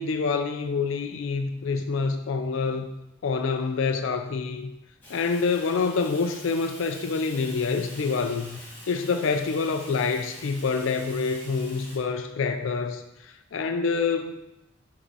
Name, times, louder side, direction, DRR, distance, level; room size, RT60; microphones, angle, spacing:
voice 1, 0.0-2.9 3.2-4.7 5.1-8.6 8.9-14.4, left 4 dB, 75° left, 6 dB, 0.4 m, -27 dB
Fire, 5.0-12.0, left 1 dB, 10° left, 1.9 m, -45 dB
6.9 x 3.7 x 5.4 m, 0.92 s
head